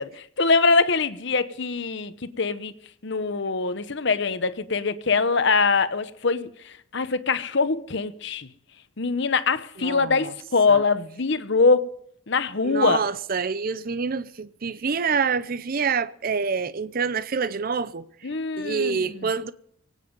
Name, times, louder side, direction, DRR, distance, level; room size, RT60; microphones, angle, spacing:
voice 1, 0.0-2.7 3.0-6.5 6.9-8.5 9.0-11.8 12.3-13.0 18.2-19.3, left 4 dB, 60° left, 1.0 m, -23 dB
voice 2, 9.8-10.3 10.7-10.8 12.6-18.0 18.6-19.5, right 5 dB, 45° right, 0.6 m, -27 dB
23.5 x 9.2 x 5.3 m
head